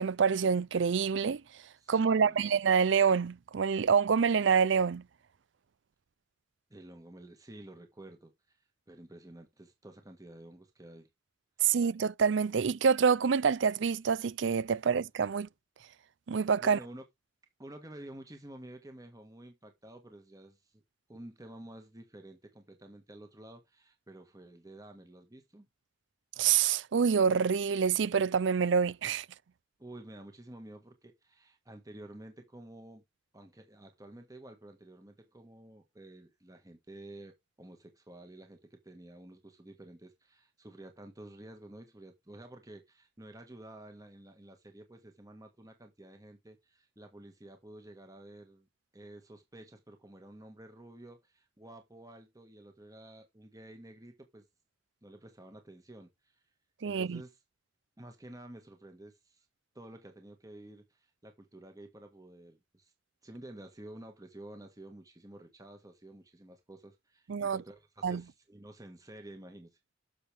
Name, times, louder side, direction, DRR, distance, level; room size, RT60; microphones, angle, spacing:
voice 1, 0.0-1.4 1.9-5.0 11.6-15.5 16.3-16.8 26.4-29.3 56.8-57.2 67.3-67.6 68.0-68.2, right 6 dB, 65° right, 0.5 m, -26 dB
voice 2, 1.8-2.5 6.7-8.6 8.9-11.1 16.6-17.0 17.6-20.8 21.1-25.7 29.8-33.0 33.3-48.7 48.9-54.4 55.0-56.4 56.8-57.4 58.0-59.5 59.7-62.9 63.2-69.8, right 1 dB, 20° right, 1.6 m, -51 dB
11.0 x 7.1 x 3.4 m
head